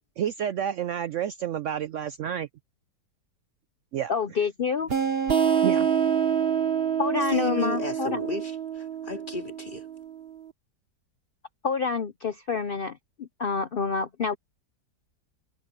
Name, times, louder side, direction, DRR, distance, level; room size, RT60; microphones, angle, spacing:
voice 1, 0.2-2.5 3.9-4.1 5.6-5.9, right 9 dB, 85° right, 0.6 m, -29 dB
voice 2, 4.1-4.9 7.0-8.2 11.6-14.3, left 5 dB, 75° left, 0.5 m, -28 dB
sound 1, 4.9-10.3, right 8 dB, 40° right, 1.2 m, -26 dB
voice 3, 7.2-9.9, left 3 dB, 25° left, 3.8 m, -33 dB
omnidirectional pair, 1.8 m